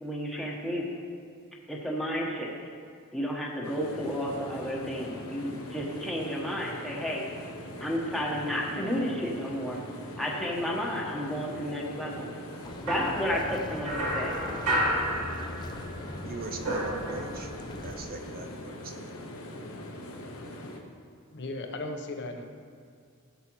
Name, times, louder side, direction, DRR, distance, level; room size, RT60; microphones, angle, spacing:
voice 1, 0.0-0.9 1.7-2.5 3.1-7.2 7.8-9.8 10.2-12.3 12.8-14.4, equal, ahead, -4 dB, 1.3 m, -32 dB
sound 1, 3.6-20.8, left 1 dB, 70° left, 1.2 m, -42 dB
sound 2, 12.6-18.1, left 1 dB, 20° left, 0.5 m, -42 dB
sound 3, 12.9-15.9 16.2-17.6, right 1 dB, 85° right, 2.1 m, -31 dB
voice 2, 16.2-17.5 17.8-19.1, right 3 dB, 45° right, 4 dB, 0.7 m, -41 dB
voice 3, 21.3-22.4, left 2 dB, 55° left, 4 dB, 0.9 m, -36 dB
14.5 x 7.4 x 3.1 m, 2.3 s
head